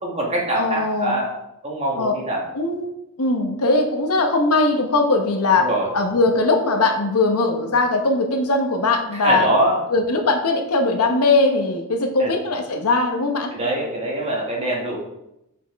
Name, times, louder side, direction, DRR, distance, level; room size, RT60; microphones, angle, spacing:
voice 1, 0.0-1.3 1.6-2.5 5.6-5.9 9.2-9.8 12.2-12.3 13.5-15.0, right 1 dB, 30° right, -2 dB, 1.8 m, -23 dB
voice 2, 0.6-1.2 2.0-2.1 2.5-2.9 3.2-9.5 9.9-13.5, left 3 dB, 75° left, 4 dB, 0.9 m, -20 dB
6.6 x 6.1 x 3.5 m, 0.85 s
head